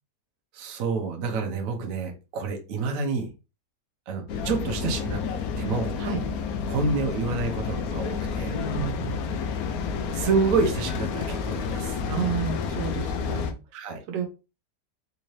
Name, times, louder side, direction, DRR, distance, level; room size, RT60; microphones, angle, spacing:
voice 1, 0.5-3.3 4.1-5.2 5.6-5.9 6.7-8.5 10.1-12.0 13.7-14.0, right 4 dB, 60° right, 4 dB, 1.0 m, -28 dB
sound 1, 4.3-13.5, left 6 dB, 70° left, 0.9 m, -30 dB
voice 2, 8.5-9.3 12.1-13.5 14.1-14.3, right 7 dB, 85° right, 4 dB, 1.4 m, -31 dB
3.6 x 2.7 x 3.0 m, 0.29 s
omnidirectional pair, 1.9 m